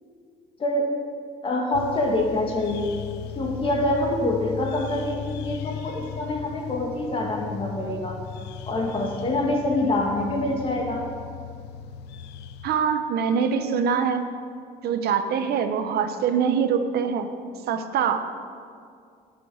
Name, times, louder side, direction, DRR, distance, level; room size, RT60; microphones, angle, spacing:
voice 1, 0.6-0.9 1.4-3.0 3.4-8.2 8.7-11.1, left 1 dB, 30° left, 0 dB, 2.5 m, -25 dB
sound 1, 1.7-12.7, left 7 dB, 85° left, 0.6 m, -37 dB
voice 2, 12.6-14.2 14.8-17.3 17.7-18.2, right 7 dB, 70° right, 8 dB, 1.0 m, -24 dB
11.0 x 6.8 x 8.9 m, 2.3 s
cardioid pair, 110°, 17 cm